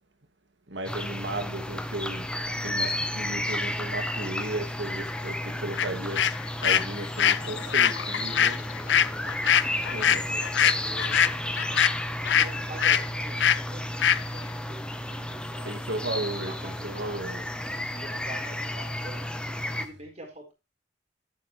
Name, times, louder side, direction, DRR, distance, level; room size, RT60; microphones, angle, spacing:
voice 1, 0.7-2.3 2.6-8.6 9.7-10.3 15.7-17.4, right 2 dB, 80° right, 2.3 m, -35 dB
sound 1, 0.9-19.9, left 1 dB, 5° left, 0.9 m, -33 dB
sound 2, 5.8-5.9 6.1-12.5 12.8-13.0 13.4-13.6 14.0-14.2, left 9 dB, 75° left, 0.6 m, -23 dB
voice 2, 7.1-11.8 12.4-15.8 16.2-17.5 17.9-19.4 19.7-20.5, right 1 dB, 35° right, 4.5 m, -46 dB
11.0 x 8.8 x 3.2 m
head